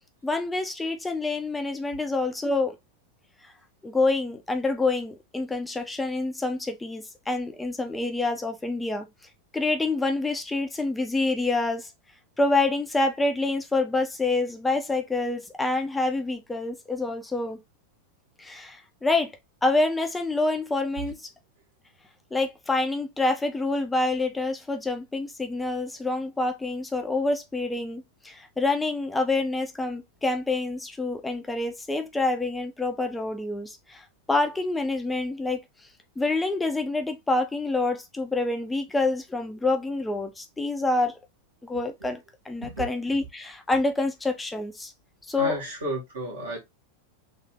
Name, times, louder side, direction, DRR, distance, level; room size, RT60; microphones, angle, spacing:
voice 1, 0.2-2.8 3.4-3.5 3.8-9.1 9.5-11.9 12.4-17.6 18.4-19.3 19.6-21.3 22.3-35.9 36.2-41.2 41.6-44.9 45.3-45.6, left 2 dB, 10° left, 0.5 m, -27 dB
voice 2, 45.4-46.6, right 1 dB, 65° right, 1.8 m, -32 dB
3.3 x 2.6 x 3.7 m
figure-of-eight pair, 90°, 0 cm